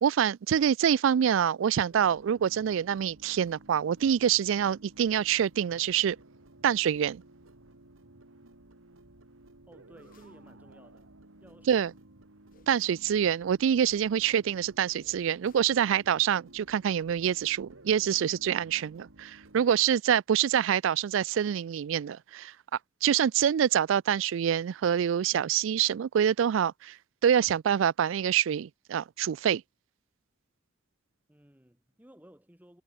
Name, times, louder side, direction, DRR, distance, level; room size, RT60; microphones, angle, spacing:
voice 1, 0.0-6.2 6.6-7.2 11.7-11.9 12.7-22.5 23.0-27.0 27.2-29.6, right 9 dB, 70° right, 0.3 m, -26 dB
sound 1, 1.9-19.7, right 2 dB, 90° right, 2.4 m, -55 dB
voice 2, 9.7-11.1 11.4-12.0 31.3-32.8, equal, 10° right, 2.0 m, -56 dB
sound 2, 10.0-10.5 12.5-13.1 15.0-15.8, left 4 dB, 45° left, 3.6 m, -64 dB
head